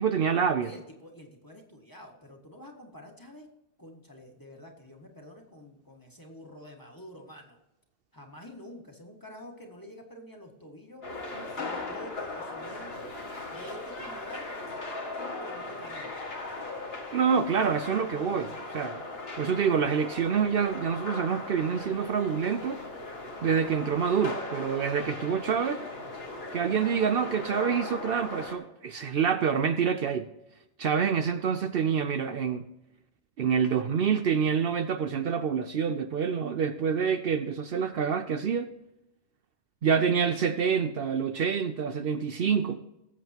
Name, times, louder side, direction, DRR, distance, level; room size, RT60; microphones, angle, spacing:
voice 1, 0.0-0.7 17.1-19.0 19.4-22.8 23.4-25.8 26.5-30.3 30.8-32.6 33.4-38.7 39.8-42.8, right 7 dB, 65° right, 0.8 m, -27 dB
voice 2, 0.6-3.5 3.8-7.6 8.1-11.0 11.6-13.1 13.5-14.5 15.4-16.1, equal, 20° left, 1.8 m, -47 dB
sound 1, 11.0-28.6, left 2 dB, 65° left, 2.1 m, -38 dB
18.5 x 7.6 x 2.9 m
omnidirectional pair, 1.1 m